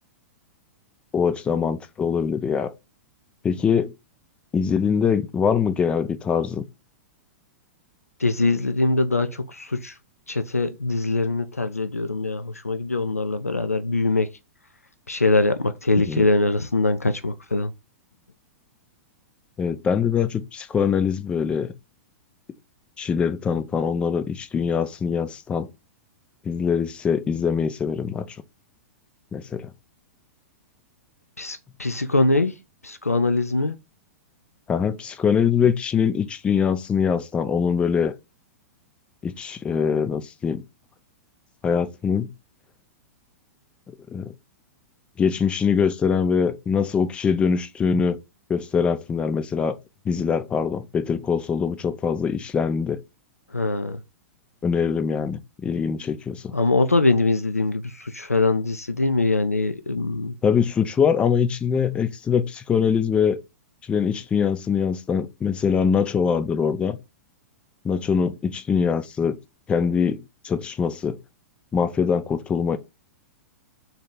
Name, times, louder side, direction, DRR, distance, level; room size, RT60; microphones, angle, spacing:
voice 1, 1.1-2.7 3.4-3.9 4.5-6.7 16.1-16.2 19.6-21.7 23.0-25.7 26.5-28.4 29.3-29.7 34.7-38.1 39.2-40.6 41.6-42.3 44.1-44.3 45.2-48.2 48.5-49.8 50.1-53.0 54.6-56.5 60.4-63.4 63.9-67.0 67.8-69.4 69.7-71.2 71.7-72.8, left 6 dB, 15° left, 0.3 m, -23 dB
voice 2, 8.2-10.0 10.3-14.3 15.1-17.7 31.4-32.6 32.8-33.8 53.5-54.0 56.5-60.4, left 2 dB, 90° left, 0.3 m, -23 dB
3.3 x 2.7 x 3.8 m
figure-of-eight pair, 105°, 8 cm